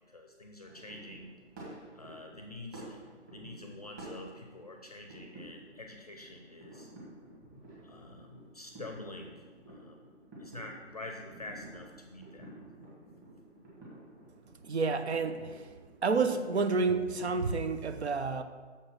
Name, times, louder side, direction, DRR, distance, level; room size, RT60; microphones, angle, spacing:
voice 1, 0.0-1.3 1.9-3.0 3.3-6.9 7.8-10.1 10.4-12.5, left 2 dB, 35° left, 3 dB, 0.6 m, -47 dB
sound 1, 0.6-17.5, right 1 dB, 15° right, 1.7 m, -51 dB
voice 2, 14.6-15.7 16.0-18.4, right 4 dB, 60° right, 9 dB, 0.8 m, -29 dB
6.6 x 5.5 x 5.8 m, 1.5 s
hypercardioid pair, 165°, 36 cm